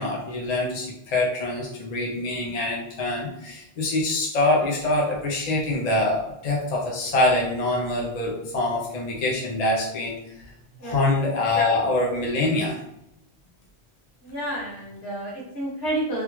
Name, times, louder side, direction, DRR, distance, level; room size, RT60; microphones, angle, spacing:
voice 1, 0.0-10.2 10.8-12.8, left 2 dB, 45° left, -2 dB, 0.6 m, -24 dB
voice 2, 14.2-16.2, right 1 dB, 60° left, -6 dB, 1.8 m, -30 dB
3.5 x 2.3 x 3.0 m, 0.81 s
omnidirectional pair, 1.2 m